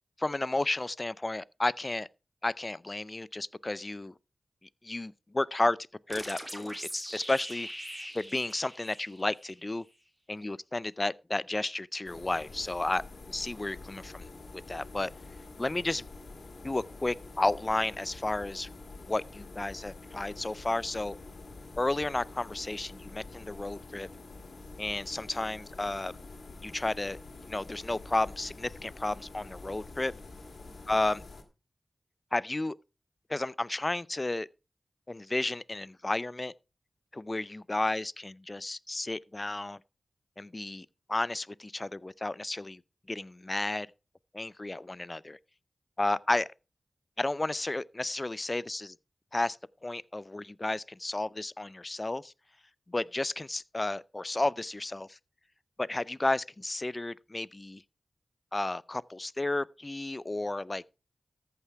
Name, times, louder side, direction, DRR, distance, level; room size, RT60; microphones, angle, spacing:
voice 1, 0.2-2.1 2.4-4.1 4.8-5.8 6.1-7.7 8.1-9.8 10.3-13.0 13.3-14.3 14.7-15.1 15.6-16.0 16.6-18.7 19.1-21.2 21.8-24.1 24.8-26.1 26.6-27.2 27.5-30.1 30.9-31.2 32.3-32.8 33.3-34.5 35.1-36.5 37.1-39.8 40.4-42.8 43.1-43.9 44.3-45.4 46.0-46.5 47.2-48.9 49.3-49.6 49.8-52.3 52.9-55.2 55.8-57.8 58.5-60.8, left 2 dB, 30° left, 0.4 m, -32 dB
sound 1, 6.1-9.6, equal, ahead, 2.9 m, -42 dB
sound 2, 12.0-31.4, left 3 dB, 75° left, 2.1 m, -47 dB
14.0 x 5.8 x 4.5 m
wide cardioid pair, 60°, 0 cm